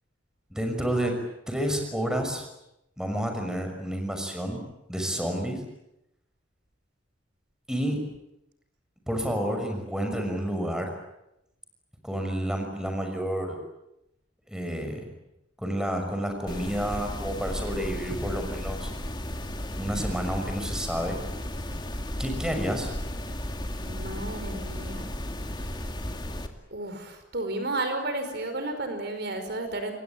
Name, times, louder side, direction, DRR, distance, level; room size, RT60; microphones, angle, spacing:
voice 1, 0.5-1.2 1.5-2.4 3.0-4.6 4.9-5.6 7.7-8.0 9.1-10.9 12.0-13.6 14.5-15.1 15.6-18.9 19.7-21.2 22.2-22.9, equal, 5° right, 4 dB, 6.1 m, -30 dB
sound 1, 16.5-26.5, left 1 dB, 25° left, 2.6 m, -34 dB
voice 2, 23.9-25.1 25.6-25.7 26.7-29.9, right 2 dB, 60° right, 7 dB, 5.0 m, -32 dB
28.5 x 22.5 x 8.8 m, 0.86 s
head